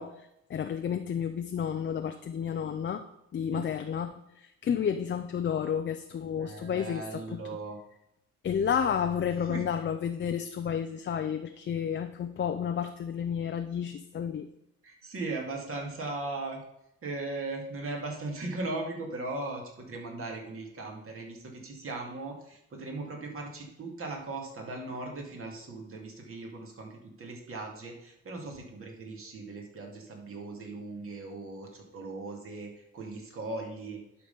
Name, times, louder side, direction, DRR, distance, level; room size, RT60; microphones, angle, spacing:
voice 1, 0.0-3.0 3.3-7.4 8.4-14.5, left 8 dB, 40° left, 7 dB, 0.5 m, -31 dB
voice 2, 6.4-7.8 9.4-9.6 14.8-16.6 17.0-34.3, right 2 dB, 45° right, 0 dB, 2.3 m, -38 dB
11.5 x 3.9 x 5.5 m, 0.83 s
cardioid pair, 90°, 30 cm